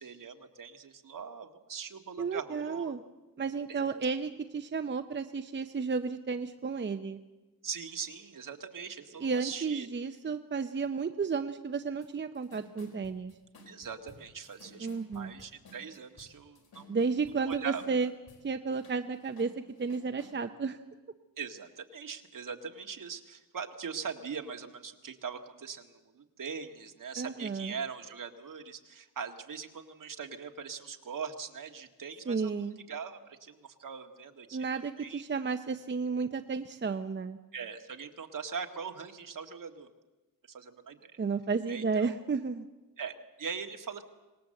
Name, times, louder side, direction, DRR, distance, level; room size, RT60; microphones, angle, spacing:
voice 1, 0.0-2.9 3.7-4.0 7.6-9.9 13.6-14.9 15.1-16.9 17.5-17.8 21.4-32.5 32.9-35.2 37.5-39.9 40.5-41.1 41.7-42.2 43.0-44.0, right 6 dB, 60° right, 5 dB, 1.8 m, -41 dB
voice 2, 2.2-3.0 3.4-7.2 9.2-13.3 14.8-15.3 16.9-18.1 18.4-19.5 19.8-20.8 27.2-27.7 32.3-32.8 34.5-37.4 41.2-42.7, right 5 dB, 30° right, 8 dB, 0.7 m, -32 dB
sound 1, 12.0-12.1 12.3-18.4 18.7-20.4, left 2 dB, 90° left, 5.0 m, -56 dB
25.5 x 19.5 x 7.7 m, 1.1 s
wide cardioid pair, 175°, 36 cm